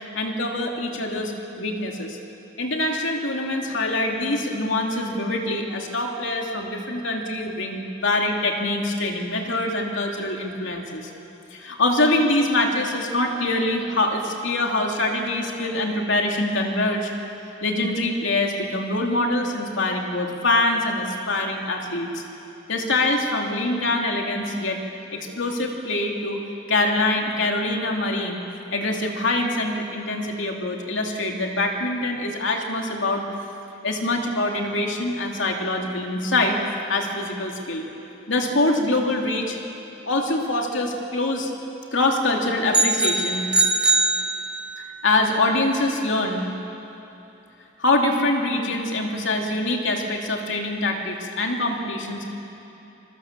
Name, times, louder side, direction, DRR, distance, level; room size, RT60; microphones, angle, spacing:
voice 1, 0.1-2.2 2.6-11.1 11.5-17.1 17.6-22.2 22.7-24.8 25.1-26.4 26.7-28.4 28.7-33.2 33.8-36.6 36.9-37.9 38.3-39.6 40.0-41.5 41.9-43.5 44.8-46.5 47.8-52.3, left 2 dB, 70° left, 1 dB, 2.9 m, -24 dB
sound 1, 42.7-44.9, right 3 dB, 5° right, 1.6 m, -21 dB
26.5 x 24.5 x 7.4 m, 3.0 s
head